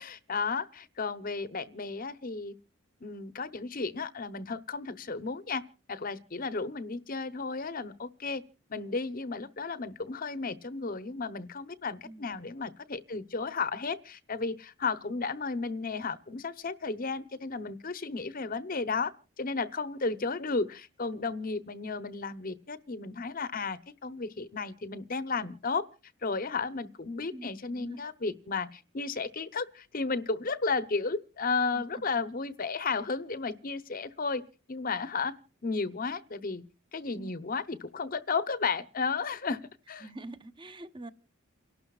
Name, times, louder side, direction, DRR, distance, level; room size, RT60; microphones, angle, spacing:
voice 1, 0.0-2.5 3.0-5.6 5.9-8.4 8.7-19.1 19.4-25.8 26.2-34.4 34.7-35.4 35.6-36.6 36.9-39.6 39.9-40.1, left 4 dB, 45° left, 15 dB, 0.9 m, -33 dB
voice 2, 12.0-12.5 27.3-28.0 31.7-32.0 37.1-37.3 40.0-41.1, right 2 dB, 25° right, 12 dB, 1.0 m, -45 dB
29.0 x 12.0 x 2.4 m, 0.34 s
head